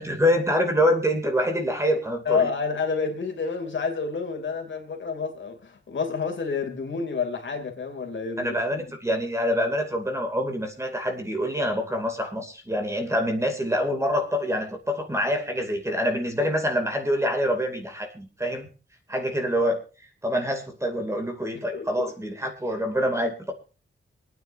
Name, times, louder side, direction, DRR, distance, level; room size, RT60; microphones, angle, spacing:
voice 1, 0.0-2.5 8.4-18.7 19.1-19.8 20.2-23.5, equal, 15° right, 4 dB, 2.6 m, -26 dB
voice 2, 2.2-8.8 21.5-22.1, left 5 dB, 65° left, 3 dB, 2.8 m, -29 dB
26.5 x 9.3 x 2.6 m, 0.34 s
wide cardioid pair, 165°, 21 cm